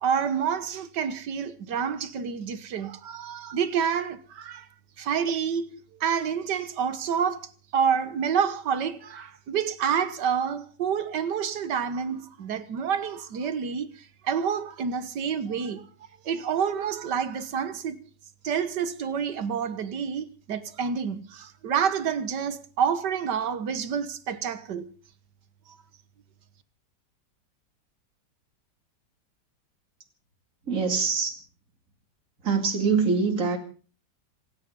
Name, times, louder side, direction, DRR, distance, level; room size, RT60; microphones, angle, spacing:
voice 1, 0.0-4.7 5.0-15.9 16.3-18.0 18.4-24.9, right 7 dB, 75° right, 1.9 m, -28 dB
voice 2, 30.7-31.4 32.4-33.6, right 5 dB, 50° right, 3.0 m, -24 dB
26.5 x 9.9 x 5.3 m
omnidirectional pair, 1.9 m